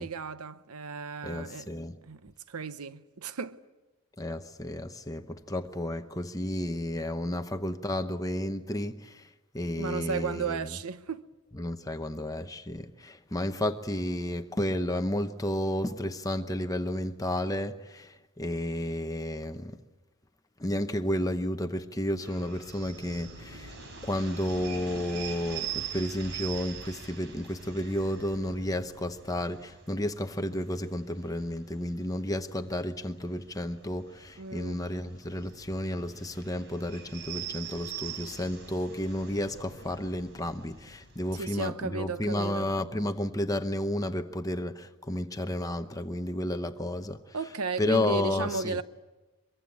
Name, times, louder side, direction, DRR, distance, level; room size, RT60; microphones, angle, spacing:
voice 1, 0.0-1.7 2.1-3.6 9.8-11.3 34.4-34.8 41.4-42.7 47.3-48.8, right 4 dB, 85° right, 0.9 m, -35 dB
voice 2, 1.2-2.0 4.2-10.6 11.5-19.8 20.6-23.8 24.0-47.4 47.8-48.8, left 1 dB, 15° left, 0.8 m, -32 dB
sound 1, 22.2-41.5, right 7 dB, 55° right, 4.2 m, -44 dB
24.0 x 23.5 x 8.5 m
head